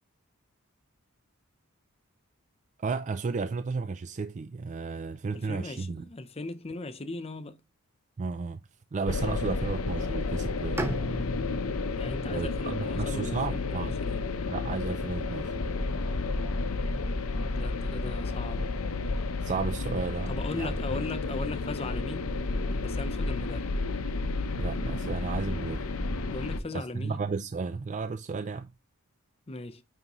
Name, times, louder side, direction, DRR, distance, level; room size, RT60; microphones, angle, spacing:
voice 1, 2.8-6.0 8.2-8.6 8.9-11.0 12.3-14.0 14.5-15.5 19.4-20.7 24.6-25.9 26.7-28.7, right 4 dB, 35° right, 0.3 m, -33 dB
voice 2, 5.3-7.6 12.0-14.4 17.5-18.8 20.3-22.4 22.8-23.7 26.3-27.2 29.5-29.8, left 2 dB, 25° left, 0.6 m, -38 dB
sound 1, 9.1-26.6, left 3 dB, 75° left, 0.8 m, -31 dB
Bowed string instrument, 10.8-14.7, right 1 dB, 10° right, 0.8 m, -39 dB
9.2 x 3.6 x 3.0 m
head